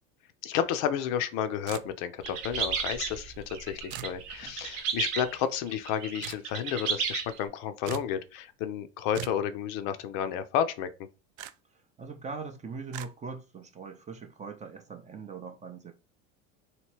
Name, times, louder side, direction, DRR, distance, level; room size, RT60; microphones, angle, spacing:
voice 1, 0.4-10.9, left 9 dB, 50° left, 0.5 m, -31 dB
sound 1, 1.7-2.2 3.9-4.2 6.2-6.5 7.9-8.1 9.1-9.5 11.4-11.5 12.9-13.1, right 13 dB, 70° right, 0.5 m, -40 dB
sound 2, 2.2-7.4, right 6 dB, 50° right, 0.9 m, -33 dB
voice 2, 12.0-15.9, right 4 dB, 20° right, 0.5 m, -41 dB
2.9 x 2.8 x 3.0 m
hypercardioid pair, 85°, 40 cm